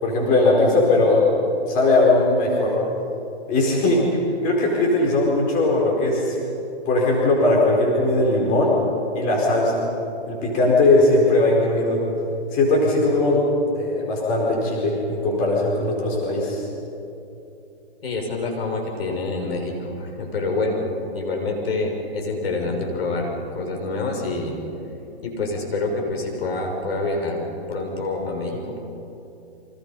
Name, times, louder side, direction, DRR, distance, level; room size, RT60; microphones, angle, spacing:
voice 1, 0.0-1.3 1.7-2.8 3.5-4.1 4.4-6.3 6.9-8.7 9.1-9.8 10.3-12.0 12.5-13.5 13.7-16.6, left 2 dB, 25° left, -2 dB, 4.7 m, -19 dB
voice 2, 18.0-20.8 21.1-24.6 24.9-28.8, left 2 dB, 65° left, 1 dB, 6.4 m, -27 dB
29.5 x 25.5 x 5.6 m, 2.8 s
hypercardioid pair, 145°, 33 cm